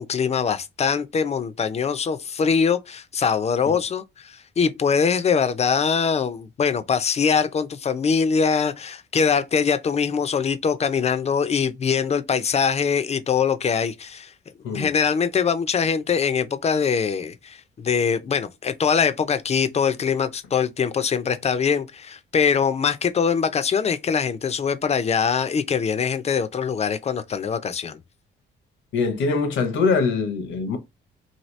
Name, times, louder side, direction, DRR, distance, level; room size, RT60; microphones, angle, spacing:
voice 1, 0.0-14.3 14.7-28.0, left 6 dB, 35° left, 0.4 m, -23 dB
voice 2, 28.9-30.8, left 4 dB, 80° left, 0.8 m, -23 dB
2.8 x 2.7 x 3.1 m
cardioid pair, 90°, 20 cm